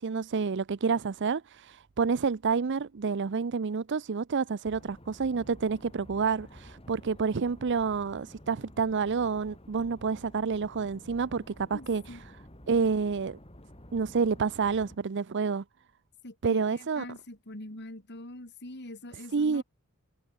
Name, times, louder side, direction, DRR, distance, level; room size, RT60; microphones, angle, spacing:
voice 1, 0.0-12.2 12.7-13.4 13.9-15.6 16.4-17.1 19.3-19.6, right 5 dB, 55° right, 0.5 m, -29 dB
sound 1, 4.6-15.0, equal, 25° left, 6.1 m, -51 dB
voice 2, 11.7-12.2 16.2-19.6, left 1 dB, 55° left, 3.7 m, -44 dB
head